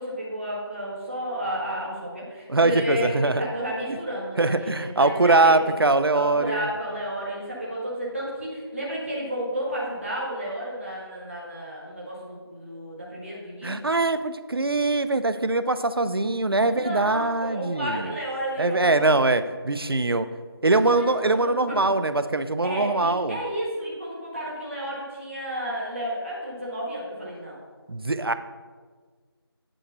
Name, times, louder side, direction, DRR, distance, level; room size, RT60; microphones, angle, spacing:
voice 1, 0.0-5.8 6.1-13.8 16.6-19.2 20.0-20.3 20.8-21.8 22.6-27.6, equal, 30° right, -5 dB, 1.3 m, -32 dB
voice 2, 2.5-3.4 4.4-6.7 13.6-18.1 18.6-20.3 20.6-23.4 27.9-28.3, right 2 dB, 65° right, 12 dB, 0.5 m, -22 dB
8.7 x 3.0 x 6.4 m, 1.5 s
figure-of-eight pair, 175°, 14 cm